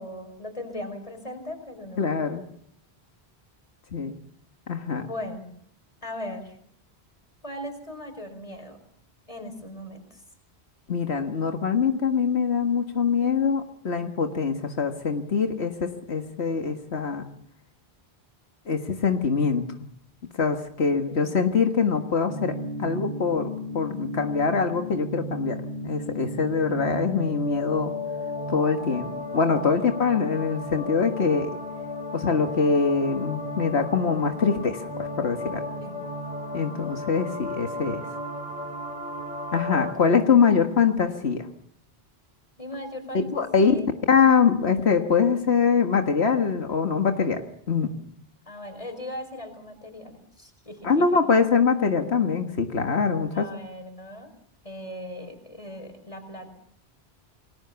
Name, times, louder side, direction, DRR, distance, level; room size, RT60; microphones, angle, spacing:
voice 1, 0.0-2.0 5.0-5.5 6.0-6.6 7.4-8.8 9.3-10.2 20.8-21.3 29.7-30.0 35.8-36.0 39.7-40.5 42.6-43.9 48.5-51.2 53.3-54.3 54.6-56.5, left 1 dB, 30° left, 6 dB, 5.0 m, -39 dB
voice 2, 2.0-2.4 3.9-4.2 4.7-5.0 10.9-17.3 18.7-19.6 20.4-22.5 22.8-25.6 25.8-27.9 28.5-31.5 32.1-35.7 36.5-38.0 39.5-41.5 43.3-43.7 44.1-47.9 50.8-53.5, left 5 dB, 85° left, 5 dB, 1.9 m, -23 dB
sound 1, 22.2-39.9, left 1 dB, 5° right, 6.0 m, -34 dB
28.5 x 19.5 x 7.0 m, 0.68 s
omnidirectional pair, 1.1 m